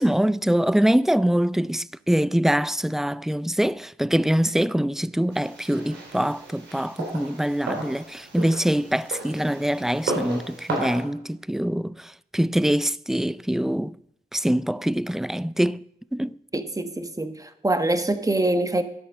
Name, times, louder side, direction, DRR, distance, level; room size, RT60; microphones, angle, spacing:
voice 1, 0.0-14.0 14.3-15.8 16.1-16.4, equal, ahead, 0.3 m, -24 dB
sound 1, 5.3-11.0, right 2 dB, 90° right, 4.0 m, -34 dB
voice 2, 16.5-18.8, right 2 dB, 20° right, 1.2 m, -24 dB
12.0 x 7.7 x 5.5 m
supercardioid pair, 50°, 19 cm